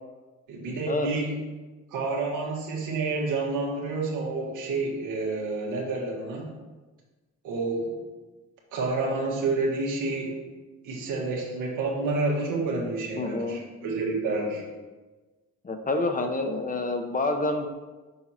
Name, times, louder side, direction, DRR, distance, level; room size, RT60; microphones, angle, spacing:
voice 1, 0.5-1.3 1.9-6.5 7.4-8.0 8.7-10.4 10.8-14.6, right 3 dB, 90° right, -2 dB, 1.6 m, -29 dB
voice 2, 13.2-13.6 15.6-17.7, left 2 dB, 30° left, 5 dB, 0.8 m, -28 dB
6.4 x 4.6 x 4.3 m, 1.2 s
cardioid pair, 90°, 30 cm